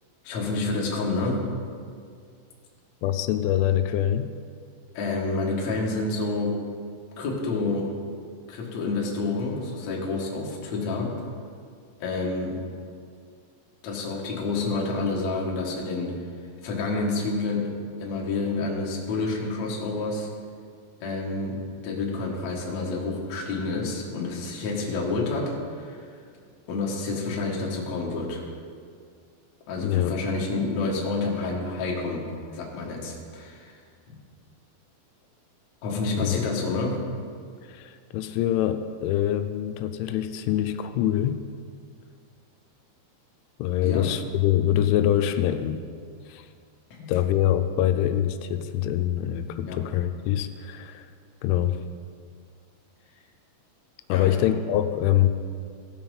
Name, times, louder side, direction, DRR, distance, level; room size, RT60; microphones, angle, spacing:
voice 1, 0.2-1.5 4.9-6.6 7.2-7.9 8.5-11.2 12.0-12.6 13.8-16.1 16.6-20.3 21.0-26.1 26.7-28.4 29.7-32.2 32.5-33.7 35.8-37.1 43.8-44.1 47.0-47.1 49.6-49.8 54.1-54.5, left 3 dB, 60° left, -2 dB, 2.0 m, -29 dB
voice 2, 3.0-4.3 29.8-30.1 36.2-36.4 37.7-41.4 43.6-45.8 46.3-46.5 47.1-51.1 51.4-51.8 54.1-55.3, left 11 dB, 85° left, 9 dB, 3.0 m, -24 dB
16.5 x 5.8 x 5.5 m, 2.2 s
omnidirectional pair, 5.5 m